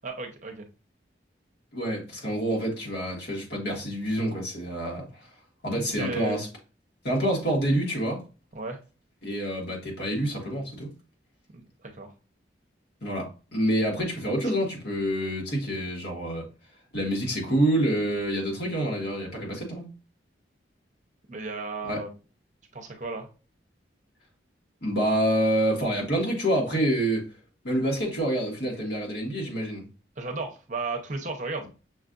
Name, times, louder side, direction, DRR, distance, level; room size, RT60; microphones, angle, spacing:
voice 1, 0.0-0.6 5.7-6.4 8.5-8.8 11.5-11.6 11.9-12.1 21.3-22.1 22.7-23.3 30.2-31.6, right 3 dB, 40° right, 4 dB, 0.8 m, -34 dB
voice 2, 1.7-5.3 5.6-6.5 7.0-8.2 9.2-10.9 13.0-16.4 16.9-19.9 21.8-22.0 24.8-27.2 27.6-29.8, right 1 dB, 60° left, -1 dB, 1.5 m, -27 dB
6.1 x 2.4 x 2.4 m, 0.33 s
head